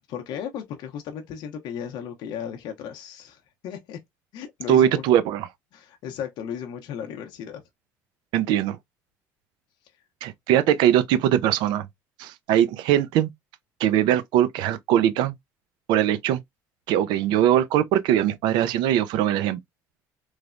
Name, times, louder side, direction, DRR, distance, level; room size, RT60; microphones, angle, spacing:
voice 1, 0.1-4.0 4.3-5.1 5.7-7.6, left 8 dB, 70° left, 0.6 m, -35 dB
voice 2, 4.7-5.5 8.3-8.8 10.2-11.9 12.2-13.3 13.8-15.3 15.9-16.4 16.9-19.6, right 11 dB, 75° right, 0.4 m, -21 dB
3.1 x 2.0 x 2.4 m
supercardioid pair, 90°, 8 cm